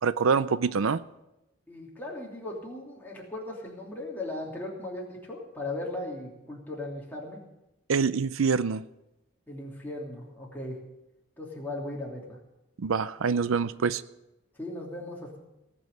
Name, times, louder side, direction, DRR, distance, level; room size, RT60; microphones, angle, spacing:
voice 1, 0.0-1.0 7.9-8.8 12.8-14.0, right 5 dB, 90° right, 16 dB, 0.5 m, -25 dB
voice 2, 1.7-7.4 9.5-10.8 11.4-12.4 14.6-15.4, left 2 dB, 10° left, -3 dB, 2.9 m, -37 dB
18.5 x 6.3 x 9.1 m, 0.93 s
head